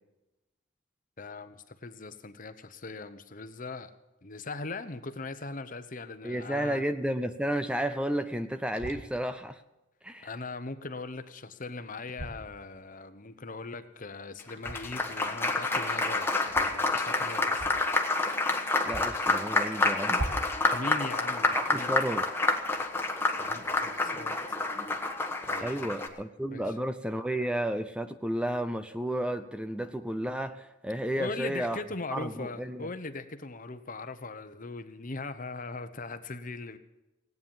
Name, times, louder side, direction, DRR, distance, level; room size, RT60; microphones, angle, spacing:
voice 1, 1.2-3.9 4.2-6.8 10.2-17.8 20.7-21.9 23.4-24.4 25.5-26.2 26.5-26.6 31.1-36.8, left 3 dB, 45° left, 10 dB, 1.0 m, -40 dB
voice 2, 6.2-9.6 10.0-10.3 18.9-20.2 21.5-22.3 25.6-31.8 32.1-32.9, right 1 dB, 5° right, 9 dB, 0.6 m, -32 dB
sound 1, 8.8-9.1 12.1-12.4 14.6-15.0 16.4-16.7 17.5-17.9 18.2-18.3 18.8-19.3 20.1-20.6, right 1 dB, 85° right, 2.1 m, -38 dB
Applause, 14.4-26.1, left 2 dB, 15° left, 1.3 m, -28 dB
17.5 x 9.4 x 7.2 m, 1.0 s
head